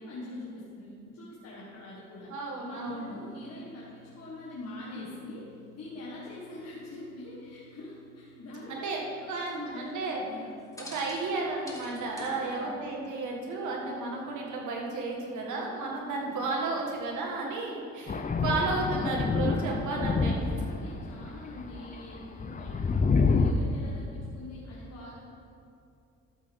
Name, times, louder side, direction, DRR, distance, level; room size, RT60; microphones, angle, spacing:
voice 1, 0.0-2.3 2.6-8.9 9.2-10.5 12.2-12.7 16.0-16.5 20.2-22.9 23.2-25.1, left 2 dB, 55° left, -7 dB, 1.9 m, -43 dB
voice 2, 2.3-3.1 8.7-9.0 9.3-10.2 10.9-20.3, right 3 dB, 75° right, -1 dB, 1.9 m, -33 dB
sound 1, 2.8-14.3, equal, 10° left, 1.8 m, -54 dB
Thunder, 18.1-21.0 21.6-23.5, left 4 dB, 25° left, 0.6 m, -27 dB
12.5 x 7.7 x 3.7 m, 2.5 s
cardioid pair, 90°, 30 cm